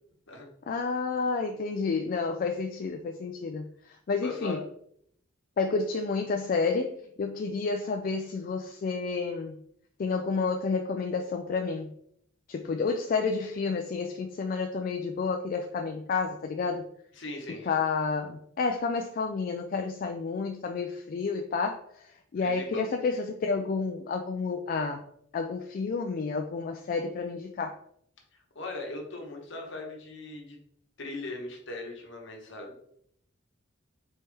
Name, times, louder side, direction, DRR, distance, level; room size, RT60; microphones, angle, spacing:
voice 1, 0.7-4.6 5.6-9.6 10.0-11.9 12.5-16.8 17.6-25.0 25.3-27.8, left 4 dB, 45° left, 4 dB, 0.3 m, -30 dB
voice 2, 4.2-4.6 17.2-17.7 22.4-22.9 28.5-30.6 31.0-32.7, left 2 dB, 65° left, 1 dB, 1.1 m, -39 dB
4.1 x 3.5 x 3.4 m, 0.68 s
head